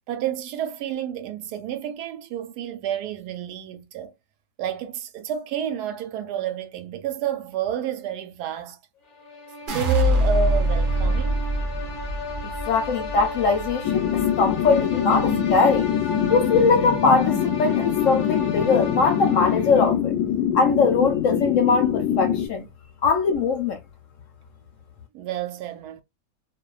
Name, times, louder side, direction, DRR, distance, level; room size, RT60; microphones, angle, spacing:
voice 1, 0.1-4.1 4.6-8.8 9.7-11.5 25.1-26.0, right 9 dB, 85° right, 1.2 m, -30 dB
sound 1, 9.1-20.1, left 2 dB, 45° left, 0.5 m, -35 dB
sound 2, 9.7-15.9 16.2-16.8, equal, 50° right, 0.6 m, -25 dB
voice 2, 12.4-15.9 16.3-20.1 20.5-22.7 23.0-23.8, left 4 dB, 65° left, 0.8 m, -21 dB
sound 3, 13.8-22.5, left 9 dB, 90° left, 1.1 m, -24 dB
2.5 x 2.3 x 2.3 m
omnidirectional pair, 1.7 m